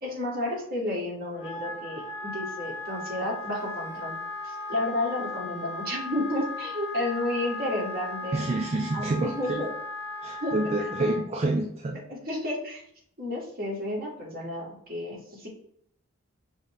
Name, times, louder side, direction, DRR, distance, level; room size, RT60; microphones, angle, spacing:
voice 1, 0.0-4.1 4.4-8.4 8.9-9.7 10.4-10.6 11.5-11.7 12.1-12.8 13.2-15.5, left 1 dB, 45° right, -3 dB, 1.4 m, -31 dB
Wind instrument woodwind instrument, 1.3-11.2, left 2 dB, 90° left, 1.0 m, -37 dB
voice 2, 8.3-9.7 10.2-12.0, right 2 dB, 30° right, 3 dB, 0.3 m, -28 dB
5.2 x 2.1 x 3.5 m, 0.66 s
head